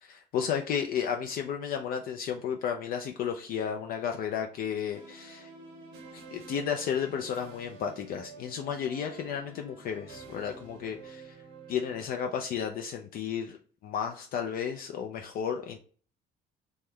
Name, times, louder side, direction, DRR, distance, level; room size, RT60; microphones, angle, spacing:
voice 1, 0.0-5.5 6.1-11.3 11.7-13.6 13.8-15.8, left 8 dB, 60° left, 4 dB, 0.4 m, -33 dB
sound 1, 4.9-12.3, right 4 dB, 90° right, 1.0 m, -49 dB
3.0 x 2.2 x 3.5 m, 0.43 s
cardioid pair, 110°, 17 cm